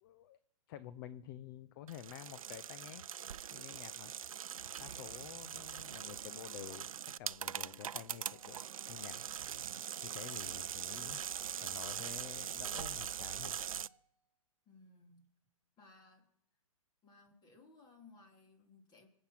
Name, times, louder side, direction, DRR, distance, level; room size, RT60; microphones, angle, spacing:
voice 1, 0.0-0.4 0.7-3.1 3.5-4.1 4.8-8.6 8.9-9.2 9.6-13.6, left 11 dB, 40° left, 14 dB, 0.7 m, -50 dB
sound 1, 1.9-13.9, right 9 dB, 75° right, 0.5 m, -42 dB
sound 2, 8.3-14.2, right 6 dB, 10° right, 1.9 m, -67 dB
voice 2, 14.7-15.2 15.8-16.3 17.0-19.1, left 3 dB, 25° left, 4 dB, 3.2 m, -61 dB
25.0 x 8.6 x 5.9 m, 0.76 s
hypercardioid pair, 125°, 18 cm